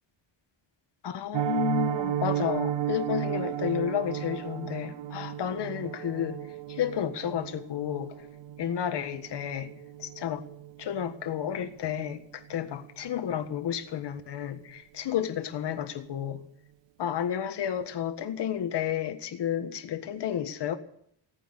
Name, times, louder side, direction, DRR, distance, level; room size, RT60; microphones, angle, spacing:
voice 1, 1.0-6.4 6.7-8.2 8.6-9.7 10.0-10.4 10.8-16.4 17.0-20.8, left 9 dB, 70° left, 8 dB, 1.6 m, -31 dB
Piano, 1.3-12.2 12.5-12.7 13.0-13.2 13.6-13.8 14.1-14.2, right 11 dB, 80° right, 0.8 m, -34 dB
17.5 x 9.2 x 8.3 m, 0.67 s
wide cardioid pair, 150°, 43 cm